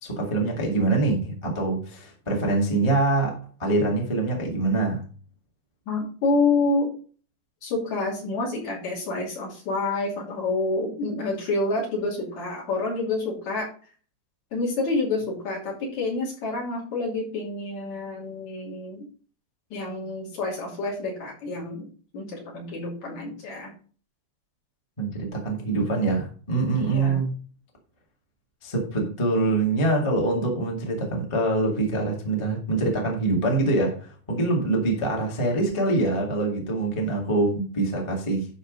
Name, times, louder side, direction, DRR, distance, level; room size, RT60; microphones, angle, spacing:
voice 1, 0.0-5.0 25.0-27.3 28.6-38.5, right 2 dB, 10° left, 1.4 m, -24 dB
voice 2, 5.9-6.9 7.6-13.7 14.5-19.1 19.7-23.7 26.8-27.2, left 3 dB, 55° left, 4.0 m, -28 dB
11.0 x 4.2 x 5.3 m
omnidirectional pair, 4.1 m